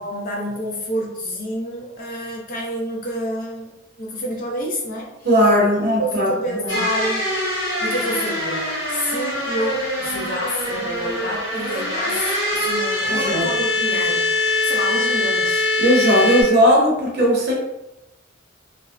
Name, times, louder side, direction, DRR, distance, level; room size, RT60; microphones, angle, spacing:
voice 1, 0.0-3.7 4.0-5.1 6.0-7.3 7.8-14.3 14.6-15.7, equal, 45° left, -2 dB, 0.5 m, -28 dB
voice 2, 5.2-6.8 13.1-13.4 15.8-17.5, equal, 55° right, -3 dB, 0.8 m, -17 dB
sound 1, 6.7-16.4, left 2 dB, 65° left, 1.0 m, -23 dB
2.5 x 2.0 x 2.3 m, 0.90 s
head